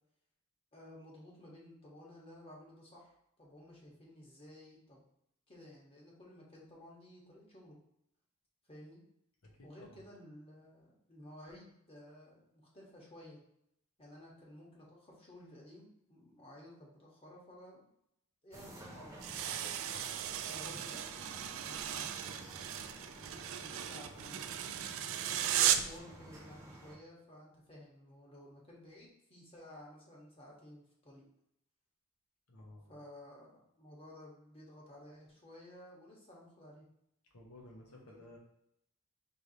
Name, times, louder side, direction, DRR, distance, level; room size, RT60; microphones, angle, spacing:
voice 1, 0.7-5.0 5.5-7.8 8.7-9.0 9.6-13.4 14.0-17.9 18.4-19.7 20.5-22.9 23.2-25.1 25.8-31.2 32.9-36.9 38.0-38.2, left 1 dB, 25° left, -4 dB, 1.1 m, -55 dB
voice 2, 9.4-10.0 32.5-32.9 37.3-38.4, left 1 dB, 85° left, 0 dB, 1.1 m, -55 dB
sound 1, 18.5-27.0, right 1 dB, 15° right, 0.9 m, -52 dB
sound 2, 19.2-26.0, right 10 dB, 65° right, 0.3 m, -36 dB
4.6 x 3.3 x 2.7 m, 0.77 s
head